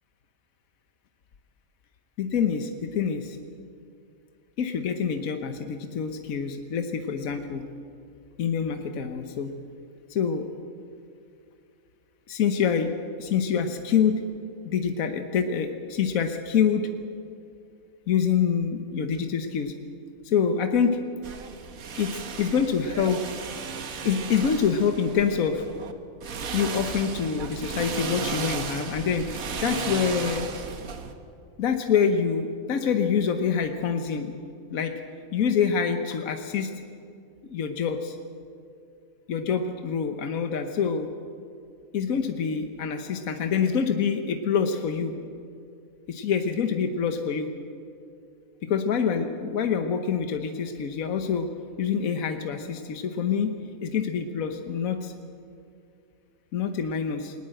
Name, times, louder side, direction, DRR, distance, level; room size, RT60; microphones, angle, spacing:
voice 1, 2.2-3.4 4.6-7.6 8.4-9.5 10.1-10.5 12.3-12.9 13.2-14.2 14.6-16.9 18.1-19.7 20.2-21.0 22.0-23.3 24.0-25.7 26.5-29.3 29.6-30.5 31.6-34.3 34.7-34.9 35.3-36.7 37.4-38.2 39.3-41.1 41.9-45.2 46.1-47.5 48.6-51.5 51.8-53.5 53.8-55.1 56.5-57.3, left 7 dB, 75° left, 6 dB, 1.4 m, -26 dB
sound 1, 21.2-25.9 26.2-31.1, right 6 dB, 75° right, 1.6 m, -35 dB
20.0 x 19.0 x 7.8 m, 2.4 s
omnidirectional pair, 1.5 m